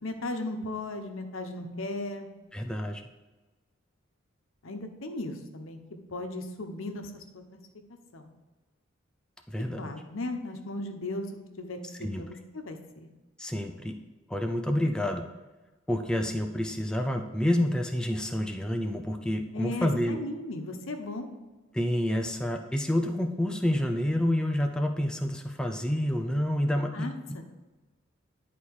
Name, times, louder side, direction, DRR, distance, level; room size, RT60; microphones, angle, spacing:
voice 1, 0.0-2.3 4.6-5.8 6.1-7.6 7.9-8.3 9.8-13.1 19.5-21.3 26.9-27.5, left 2 dB, 85° left, 5 dB, 1.0 m, -37 dB
voice 2, 2.5-3.0 9.5-9.9 12.0-12.2 13.4-13.9 14.3-15.2 15.9-20.2 21.7-27.4, left 1 dB, 5° left, 4 dB, 0.5 m, -28 dB
10.5 x 4.2 x 4.7 m, 1.2 s
head